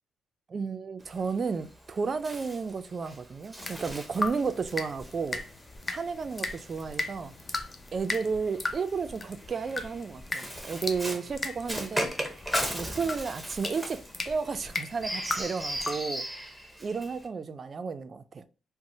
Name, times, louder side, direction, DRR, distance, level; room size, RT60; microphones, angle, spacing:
voice 1, 0.5-5.4 5.9-7.3 7.9-12.1 12.7-16.3 16.8-18.5, right 5 dB, 40° right, 0.3 m, -32 dB
Bird, 1.0-7.5 8.5-17.3, right 1 dB, ahead, 0.7 m, -38 dB
sound 1, 3.6-16.1, left 3 dB, 30° left, 0.4 m, -37 dB
4.1 x 2.0 x 2.7 m
cardioid pair, 90°, 0 cm